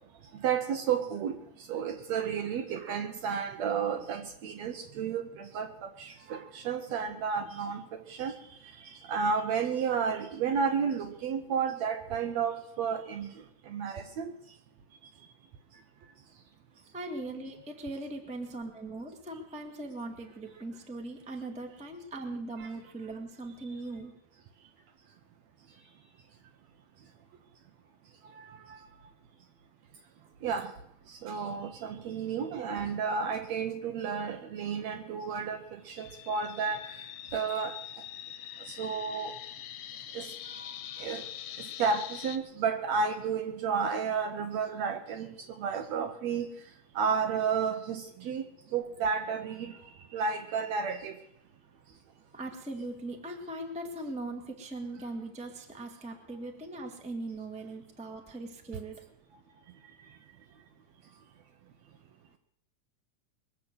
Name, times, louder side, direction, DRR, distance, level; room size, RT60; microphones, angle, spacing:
voice 1, 0.3-8.3 8.8-13.3 13.7-14.3 22.6-22.7 28.4-28.8 30.4-30.7 31.1-37.1 37.3-37.8 38.7-39.4 40.1-41.2 41.6-46.5 47.0-48.4 48.7-49.8 50.1-51.2, right 6 dB, 70° right, 7 dB, 1.8 m, -32 dB
voice 2, 16.9-24.1 52.3-59.0, right 2 dB, 5° right, 3 dB, 0.9 m, -40 dB
sound 1, 36.0-42.4, left 12 dB, 70° left, 2.0 m, -43 dB
21.5 x 7.6 x 7.8 m, 0.79 s
omnidirectional pair, 3.7 m